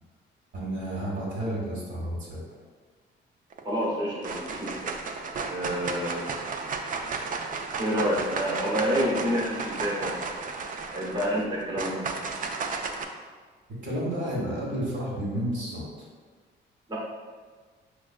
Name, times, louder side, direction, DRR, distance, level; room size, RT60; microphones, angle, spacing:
voice 1, 0.5-2.4 12.1-12.2 13.7-16.1, right 1 dB, 65° right, -4 dB, 1.2 m, -31 dB
sound 1, 3.5-3.9 4.2-13.0, right 4 dB, 45° right, 0.4 m, -33 dB
voice 2, 3.6-4.9 5.5-6.3 7.8-10.2 10.9-12.0 16.9-17.0, equal, 25° right, -6 dB, 1.0 m, -28 dB
4.8 x 2.5 x 2.4 m, 1.5 s
cardioid pair, 90°, 20 cm